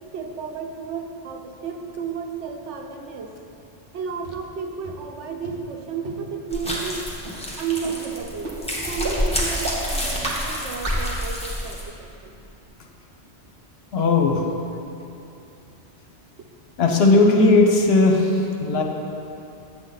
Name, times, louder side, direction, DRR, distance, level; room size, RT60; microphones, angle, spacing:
voice 1, 0.1-3.3 3.9-7.0 7.6-8.5 8.9-12.4, right 6 dB, 85° right, 4 dB, 1.0 m, -32 dB
sound 1, 4.2-4.3 4.8-4.9 5.4-5.5 6.0-6.1 6.6-6.7 7.2-7.3 7.8-7.9 8.4-8.5 9.0-9.1 9.6-9.7 10.2-10.3 10.8-10.9, right 3 dB, 55° right, 1.3 m, -31 dB
sound 2, 6.5-11.8, equal, 5° left, 1.1 m, -28 dB
voice 2, 13.9-14.4 16.8-18.8, left 3 dB, 65° left, 2 dB, 1.1 m, -17 dB
8.0 x 7.5 x 4.0 m, 2.7 s
omnidirectional pair, 1.2 m